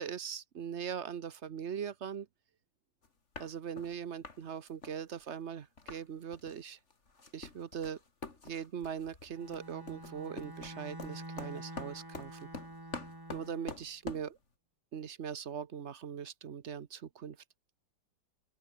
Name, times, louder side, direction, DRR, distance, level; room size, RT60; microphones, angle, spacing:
voice 1, 0.0-2.3 3.4-6.8 7.3-8.0 8.4-12.5 13.3-14.4 14.9-17.4, right 7 dB, 45° right, 1.0 m, -40 dB
sound 1, 3.0-3.1 3.3-3.9 4.2-4.4 4.7-6.0 6.3-6.6 6.9-14.3, left 3 dB, 35° left, 2.9 m, -46 dB
Bowed string instrument, 9.3-13.8, right 1 dB, 10° right, 3.0 m, -47 dB
open air
omnidirectional pair, 2.0 m